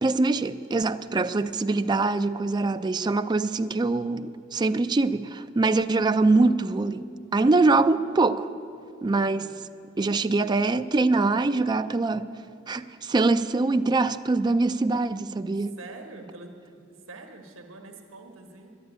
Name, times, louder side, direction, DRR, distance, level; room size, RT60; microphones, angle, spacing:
voice 1, 0.0-7.0 7.3-8.5 9.0-9.5 10.0-12.3 12.7-15.8, right 3 dB, 20° right, 0.3 m, -23 dB
voice 2, 9.2-9.5 15.8-18.8, right 2 dB, 75° right, 1.1 m, -45 dB
11.0 x 9.5 x 9.9 m
head